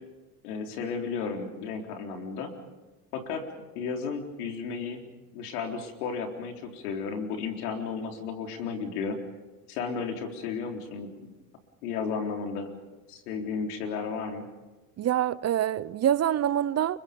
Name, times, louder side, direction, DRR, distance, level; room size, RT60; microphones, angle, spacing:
voice 1, 0.4-2.5 3.1-3.5 3.7-5.1 5.3-9.2 9.7-11.3 11.8-12.7 13.1-14.5, left 5 dB, 85° left, 4.0 m, -33 dB
voice 2, 15.0-17.0, right 11 dB, 35° right, 0.7 m, -25 dB
30.0 x 24.5 x 5.3 m
supercardioid pair, 90°, 44 cm